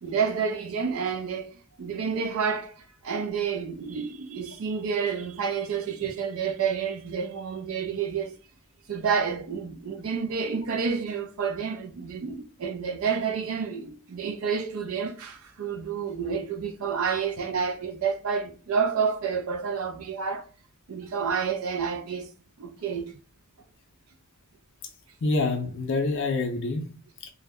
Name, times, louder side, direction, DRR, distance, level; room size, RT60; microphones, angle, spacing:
voice 1, 0.0-1.5 1.8-8.3 8.9-20.5 20.9-22.3 22.6-23.1, right 6 dB, 70° right, 0.4 m, -29 dB
voice 2, 25.2-27.3, left 3 dB, 60° left, 0.5 m, -27 dB
2.2 x 2.0 x 3.4 m
head